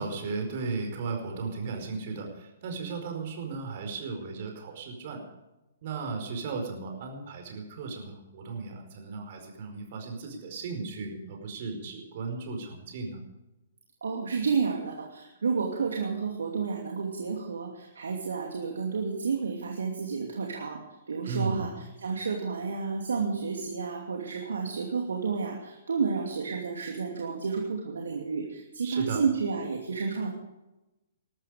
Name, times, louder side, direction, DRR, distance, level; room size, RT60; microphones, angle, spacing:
voice 1, 0.0-5.2 5.8-13.2 21.2-21.7 28.8-29.2, right 4 dB, 45° right, 3 dB, 4.9 m, -35 dB
voice 2, 14.0-20.8 21.1-30.3, right 5 dB, 65° right, 1 dB, 2.6 m, -31 dB
20.5 x 13.0 x 5.1 m, 0.99 s
figure-of-eight pair, 120°, 0 cm